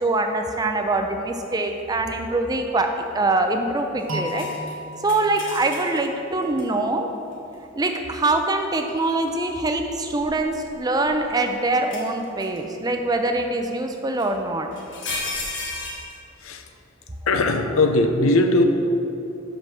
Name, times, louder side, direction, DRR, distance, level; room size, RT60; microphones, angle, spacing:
voice 1, 0.0-4.5 5.0-7.1 7.8-14.7, right 2 dB, 20° right, 5 dB, 0.4 m, -24 dB
sound 1, 4.1-7.0, left 1 dB, 70° right, 1.2 m, -35 dB
sound 2, 4.2-6.0 6.6-6.7 8.7-9.3 10.2-11.3 11.9-12.6 14.2-14.3 14.7-16.2, left 3 dB, 60° left, 1.2 m, -33 dB
voice 2, 17.3-18.6, left 2 dB, 85° left, 6 dB, 0.6 m, -19 dB
5.8 x 5.2 x 6.1 m, 2.7 s
head